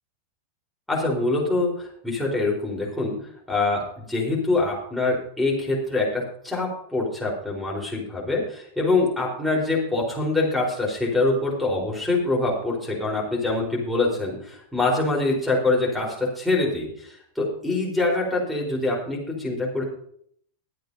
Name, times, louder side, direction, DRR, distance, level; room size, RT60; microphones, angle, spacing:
voice 1, 0.9-3.2 3.5-19.8, left 2 dB, ahead, -4 dB, 4.4 m, -24 dB
23.0 x 8.5 x 2.8 m, 0.67 s
figure-of-eight pair, 90°, 0 cm